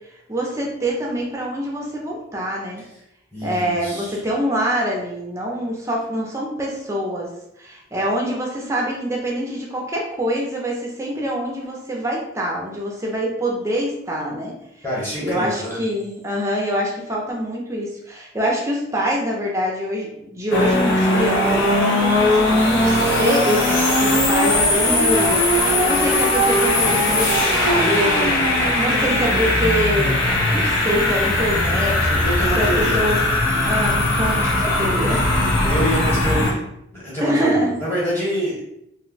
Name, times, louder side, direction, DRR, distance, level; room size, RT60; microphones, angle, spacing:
voice 1, 0.3-2.8 3.4-7.3 7.6-14.5 15.2-33.2 33.6-35.3 37.2-37.7, equal, 15° right, -2 dB, 0.5 m, -25 dB
voice 2, 3.3-4.2 14.8-15.8 32.2-33.0 34.8-34.9 35.3-36.6 36.9-38.6, equal, 10° left, -7 dB, 1.1 m, -26 dB
sound 1, 20.5-36.5, left 1 dB, 75° left, 0.7 m, -19 dB
2.6 x 2.2 x 3.9 m, 0.79 s
head